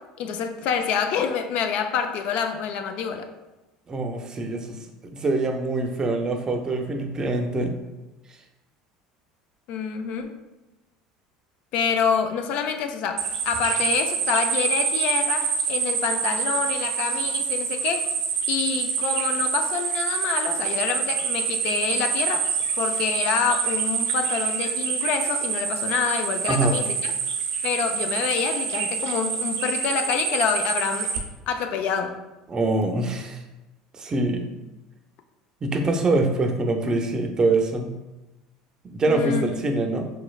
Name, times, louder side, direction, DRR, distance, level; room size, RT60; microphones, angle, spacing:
voice 1, 0.0-3.3 9.7-10.4 11.7-18.1 18.5-22.4 22.8-27.1 27.6-31.1 31.5-32.2 39.1-39.6, left 7 dB, 60° left, 7 dB, 0.4 m, -27 dB
voice 2, 3.9-7.7 26.5-26.8 32.5-33.4 33.9-34.5 35.6-38.0 38.8-40.0, right 2 dB, 30° right, 5 dB, 0.5 m, -24 dB
sound 1, 13.2-31.2, right 6 dB, 85° right, 0.5 m, -26 dB
4.4 x 3.1 x 2.3 m, 1.1 s
supercardioid pair, 85°, 2 cm